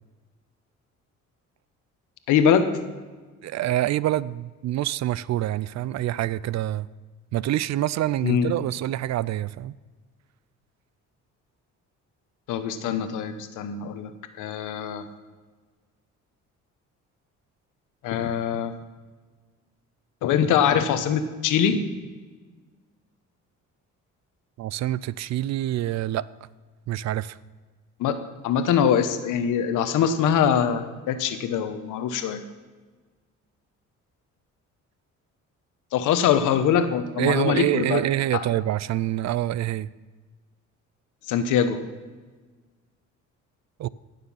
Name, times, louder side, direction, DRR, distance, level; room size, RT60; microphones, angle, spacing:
voice 1, 2.3-2.7 8.2-8.5 12.5-15.0 18.0-18.7 20.2-21.8 28.0-28.1 28.4-32.4 35.9-38.0 41.3-41.8, left 8 dB, 90° left, 9 dB, 1.1 m, -23 dB
voice 2, 3.4-6.9 7.3-9.7 24.6-26.2 26.9-27.4 37.2-39.9 43.8-43.9, right 14 dB, 65° right, 20 dB, 0.4 m, -26 dB
16.0 x 6.8 x 5.6 m, 1.4 s
cardioid pair, 90°, 30 cm